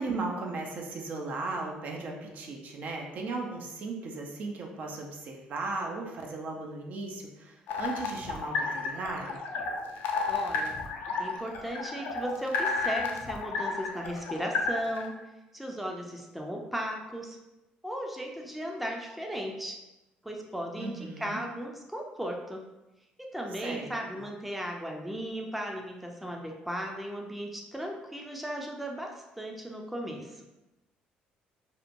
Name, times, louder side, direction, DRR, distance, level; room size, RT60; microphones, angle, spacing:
voice 1, 0.0-9.4 20.8-21.4 23.6-23.9, right 3 dB, 60° right, 1 dB, 0.4 m, -36 dB
sound 1, 7.7-15.1, left 4 dB, 75° left, 0.4 m, -32 dB
voice 2, 10.3-10.8 11.2-15.1 15.5-17.4 17.8-19.8 20.2-22.6 23.2-30.5, equal, 5° right, 0 dB, 0.4 m, -36 dB
2.8 x 2.1 x 2.5 m, 0.98 s
cardioid pair, 85°, 3 cm